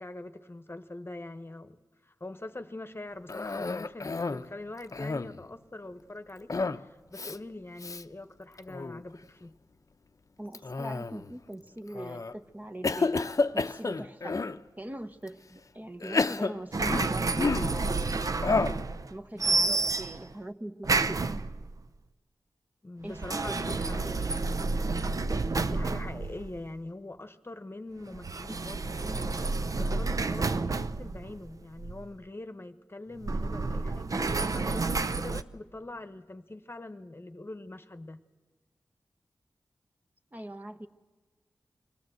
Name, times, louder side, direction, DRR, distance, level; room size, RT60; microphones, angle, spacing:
voice 1, 0.0-1.8 2.0-9.5 19.3-19.8 22.8-24.3 25.5-38.2, left 2 dB, 35° left, 10 dB, 1.0 m, -43 dB
Cough, 3.3-4.5 4.8-5.5 6.5-6.9 7.1-7.4 7.8-8.0 8.6-9.0 10.5-11.3 11.9-12.3 12.8-14.6 15.3-15.4 16.0-17.8 18.4-18.9, left 3 dB, 50° left, 0.6 m, -30 dB
voice 2, 10.4-13.3 13.5-14.4 14.8-17.9 19.1-21.4 23.0-24.3 40.3-40.9, right 1 dB, 20° right, 7 dB, 1.0 m, -42 dB
sound 1, 16.7-19.1 19.4-20.3 20.8-21.8 23.0-26.7 28.1-32.1 33.2-35.4, right 3 dB, 55° right, 0.6 m, -30 dB
25.0 x 17.0 x 7.8 m, 1.3 s
cardioid pair, 40°, 7 cm